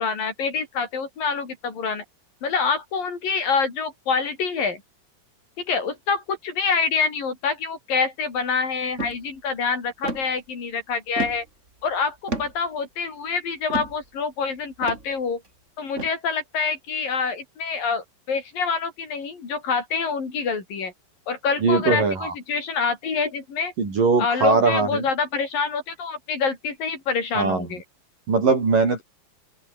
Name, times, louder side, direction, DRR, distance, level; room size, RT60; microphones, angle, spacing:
voice 1, 0.0-2.0 2.4-4.8 5.6-11.4 11.8-15.4 15.8-20.9 21.3-23.7 24.2-27.8, left 5 dB, 55° left, 6.2 m, -26 dB
sound 1, 9.0-9.2 10.0-10.3 11.2-11.5 12.3-12.6 13.7-14.0 14.8-15.1 16.0-16.1, right 2 dB, 15° right, 4.3 m, -30 dB
voice 2, 21.6-22.3 23.8-25.1 27.3-27.7 28.3-29.0, right 4 dB, 50° right, 8.0 m, -20 dB
open air
omnidirectional pair, 4.9 m